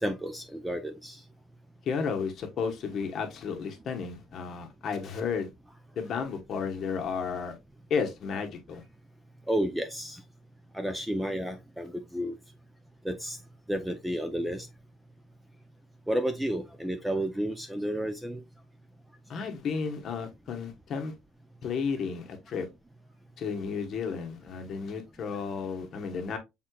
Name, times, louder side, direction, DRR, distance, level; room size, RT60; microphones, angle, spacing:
voice 1, 0.0-1.2 9.5-10.2 10.7-12.4 13.0-13.4 13.7-14.7 16.1-18.4, right 1 dB, 5° right, 0.4 m, -31 dB
voice 2, 1.8-5.5 6.0-7.6 7.9-8.8 19.3-21.1 21.6-22.7 23.4-26.4, left 5 dB, 40° left, 1.0 m, -33 dB
6.2 x 3.6 x 2.2 m
cardioid pair, 160°, 0 cm